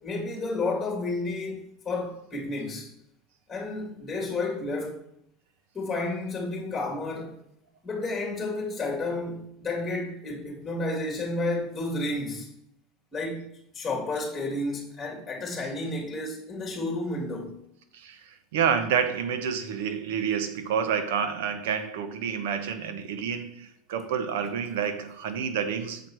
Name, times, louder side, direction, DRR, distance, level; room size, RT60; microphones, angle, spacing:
voice 1, 0.0-2.9 3.5-5.0 5.7-7.4 7.8-12.5 13.1-13.5 13.7-17.6, left 2 dB, 15° left, 2.5 m, -31 dB
voice 2, 17.9-26.1, right 7 dB, 80° right, 1.0 m, -29 dB
7.2 x 4.6 x 6.1 m
supercardioid pair, 120°, 0 cm